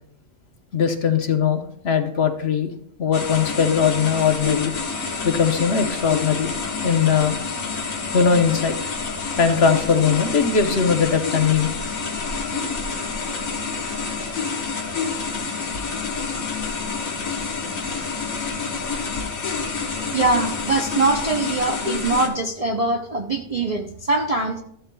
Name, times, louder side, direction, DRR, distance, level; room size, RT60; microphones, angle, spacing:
voice 1, 0.7-2.7 3.0-4.7 5.2-6.5 6.8-7.4 8.1-8.8 9.4-11.7, left 6 dB, 55° left, 6 dB, 1.0 m, -20 dB
sound 1, 3.1-22.3, left 4 dB, 80° left, 1.7 m, -28 dB
voice 2, 20.1-24.6, right 2 dB, 40° right, 2 dB, 0.5 m, -22 dB
13.5 x 11.0 x 2.3 m, 0.69 s
omnidirectional pair, 1.4 m